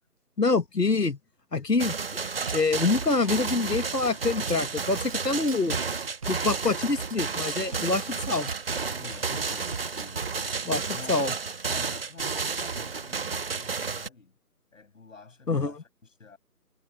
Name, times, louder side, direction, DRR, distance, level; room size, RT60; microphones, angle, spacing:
voice 1, 0.4-1.2 1.5-2.0 2.5-5.8 6.3-8.5 10.7-10.8 11.1-11.3 15.5-15.7, left 3 dB, 85° left, 1.8 m, -25 dB
sound 1, 1.8-14.1, right 5 dB, 35° right, 1.6 m, -32 dB
Drum kit / Bass drum, 2.5-2.6 3.0-4.6 5.0-6.6 7.0-8.6 9.1-10.4, right 5 dB, 20° right, 1.4 m, -39 dB
voice 2, 9.0-10.3 10.9-11.2 11.7-14.4 14.7-16.4, left 4 dB, 55° left, 6.6 m, -48 dB
figure-of-eight pair, 160°, 47 cm